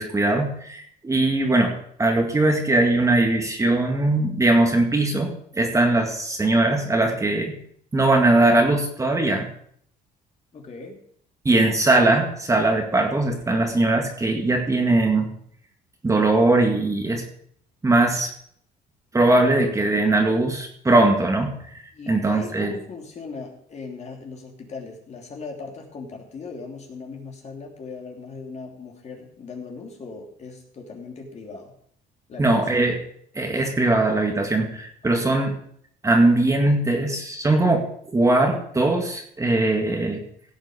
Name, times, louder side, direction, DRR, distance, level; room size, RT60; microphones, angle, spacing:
voice 1, 0.0-1.7 2.0-7.6 7.9-9.5 11.5-15.3 16.0-17.2 17.8-18.3 19.1-21.5 22.1-22.7 32.4-33.0 33.4-35.5 36.0-40.2, right 2 dB, 20° right, 3 dB, 2.0 m, -20 dB
voice 2, 10.5-11.0 21.9-31.7 32.3-32.6 35.0-35.2, left 4 dB, 40° left, 1 dB, 3.0 m, -38 dB
16.5 x 7.3 x 5.0 m, 0.63 s
cardioid pair, 110°, 17 cm